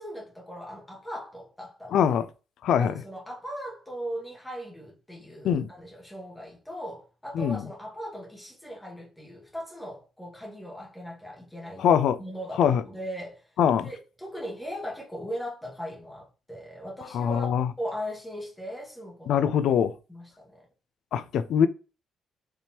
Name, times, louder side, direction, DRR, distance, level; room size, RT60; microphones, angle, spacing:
voice 1, 0.0-2.1 2.8-11.9 12.2-13.5 13.8-17.5 17.8-19.5 20.1-20.7, equal, 10° left, 1.8 m, -38 dB
voice 2, 1.9-2.3 2.6-2.9 5.4-5.7 7.3-7.6 11.8-12.2 12.6-12.8 13.6-13.9 17.1-17.7 19.3-19.9 21.1-21.7, left 8 dB, 75° left, 0.4 m, -23 dB
4.4 x 3.4 x 2.9 m
cardioid pair, 90°, 0 cm